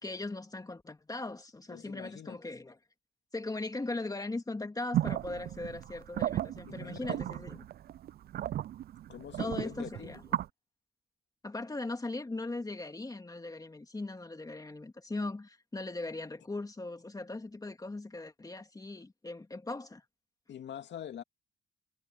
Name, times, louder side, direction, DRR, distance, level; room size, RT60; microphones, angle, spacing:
voice 1, 0.0-2.8 3.3-7.7 9.4-10.2 11.4-20.0, left 2 dB, 20° left, 2.5 m, -39 dB
voice 2, 1.7-2.4 6.7-7.2 9.1-10.2 20.5-21.2, left 9 dB, 65° left, 2.3 m, -44 dB
sound 1, 4.9-10.5, right 12 dB, 50° right, 0.4 m, -35 dB
cardioid pair, 90°, 20 cm